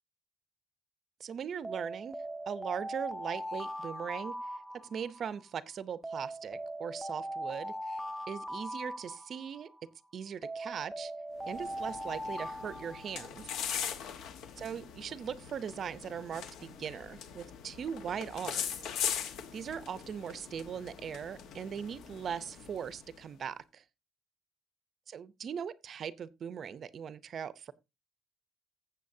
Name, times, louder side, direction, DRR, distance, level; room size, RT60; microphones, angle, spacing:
voice 1, 1.2-2.2 2.5-4.4 4.7-8.0 8.3-9.7 10.1-11.1 11.5-13.5 14.6-18.8 19.5-23.8 25.1-27.7, right 7 dB, 45° right, 0.6 m, -40 dB
Alarm, 1.6-5.3 6.0-9.7 10.4-13.6, right 1 dB, 5° right, 0.6 m, -40 dB
sound 1, 11.4-23.2, left 8 dB, 70° left, 1.2 m, -41 dB
15.0 x 7.6 x 2.7 m
cardioid pair, 140°, 0 cm